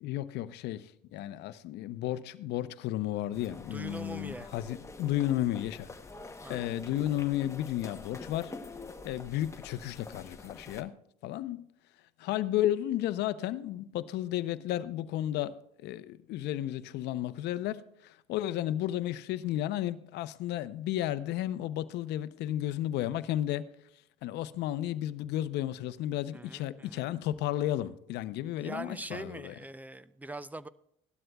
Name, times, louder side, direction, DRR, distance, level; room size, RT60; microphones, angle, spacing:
voice 1, 0.0-5.9 6.5-8.5 9.0-10.9 11.2-11.6 12.2-23.7 24.2-29.5, left 13 dB, 65° left, 0.7 m, -33 dB
sound 1, 3.3-10.8, left 3 dB, 15° left, 1.0 m, -46 dB
voice 2, 3.7-4.5 6.4-6.8 26.3-27.1 28.6-30.7, right 2 dB, 10° right, 0.5 m, -42 dB
17.0 x 12.0 x 2.3 m
supercardioid pair, 85°, 18 cm